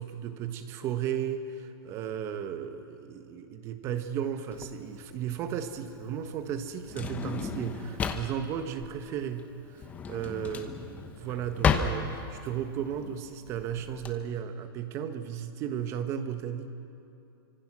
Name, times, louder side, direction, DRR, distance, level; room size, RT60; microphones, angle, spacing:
voice 1, 0.0-16.7, right 9 dB, 20° right, 8 dB, 1.2 m, -35 dB
Drawer open or close, 4.5-14.1, left 6 dB, 10° left, 0.9 m, -33 dB
28.0 x 25.0 x 6.2 m, 2.7 s
supercardioid pair, 170°, 13 cm